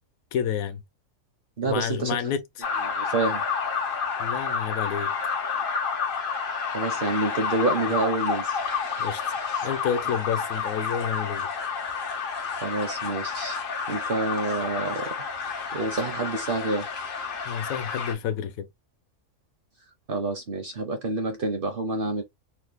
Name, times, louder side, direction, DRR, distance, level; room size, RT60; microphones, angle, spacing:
voice 1, 0.3-0.8 1.6-2.4 4.2-5.1 9.0-9.2 9.6-11.5 17.5-18.7, left 8 dB, 80° left, 1.0 m, -29 dB
voice 2, 1.6-2.2 2.9-3.4 6.7-8.6 9.5-9.7 12.6-13.6 13.9-15.1 15.7-16.9 20.1-22.2, right 2 dB, 50° right, 0.7 m, -28 dB
sound 1, 2.6-18.1, left 5 dB, 60° left, 0.6 m, -30 dB
3.0 x 2.1 x 3.3 m
omnidirectional pair, 1.5 m